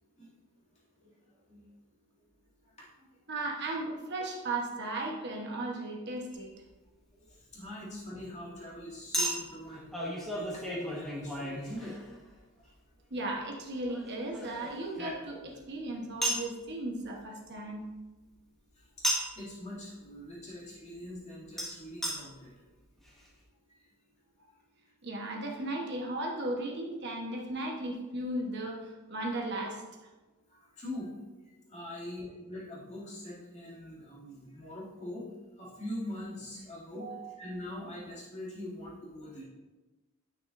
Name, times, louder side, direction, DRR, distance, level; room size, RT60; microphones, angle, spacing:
voice 1, 1.0-1.7 2.6-3.1 7.1-9.9 10.3-12.1 12.5-12.7 18.7-19.1 19.4-22.5 23.1-23.2 23.7-23.9 30.5-31.1 31.6-35.3 35.6-37.1 37.4-39.4, left 1 dB, 30° left, -7 dB, 2.4 m, -43 dB
voice 2, 3.3-6.5 13.1-17.8 25.0-29.8 36.9-37.4, right 2 dB, 50° right, 0 dB, 1.0 m, -36 dB
Chink clink, 6.3-6.5 9.1-12.3 13.9-15.6 16.2-16.5 19.0-19.4 21.6-21.7 22.0-22.1 22.8-22.9 23.1-23.2, right 1 dB, ahead, 1.2 m, -34 dB
10.0 x 6.0 x 2.6 m, 1.2 s
head